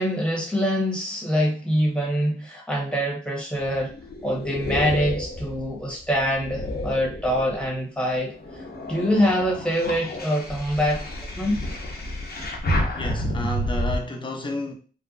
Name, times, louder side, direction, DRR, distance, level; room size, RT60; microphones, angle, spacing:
voice 1, 0.0-3.9 4.2-11.6, equal, 5° left, 1.6 m, -25 dB
sound 1, 3.6-7.8 8.3-14.0, equal, 50° left, 0.9 m, -30 dB
voice 2, 12.9-14.7, left 2 dB, 25° left, 0.9 m, -31 dB
3.6 x 2.2 x 2.6 m
supercardioid pair, 50°, 20 cm